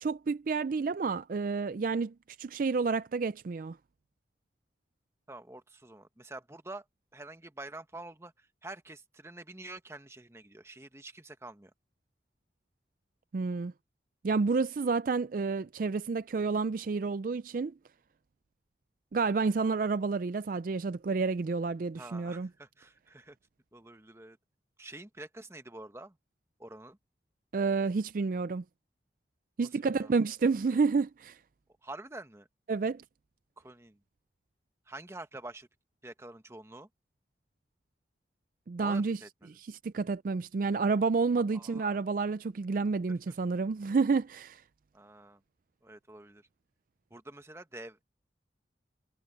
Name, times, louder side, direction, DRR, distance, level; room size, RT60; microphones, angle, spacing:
voice 1, 0.0-3.8 13.3-13.7 14.2-17.7 19.1-22.5 27.5-28.6 29.6-31.4 32.7-33.0 38.7-39.2 39.5-44.6, right 4 dB, 50° right, 0.4 m, -30 dB
voice 2, 5.3-6.8 7.1-11.7 21.9-23.4 23.7-24.4 24.8-26.2 26.6-27.0 29.6-30.1 31.8-32.5 33.6-34.0 34.9-35.7 36.0-36.9 38.8-39.5 41.5-42.0 43.1-43.4 44.9-45.4 45.8-46.4 47.1-48.0, right 2 dB, 15° right, 1.1 m, -47 dB
head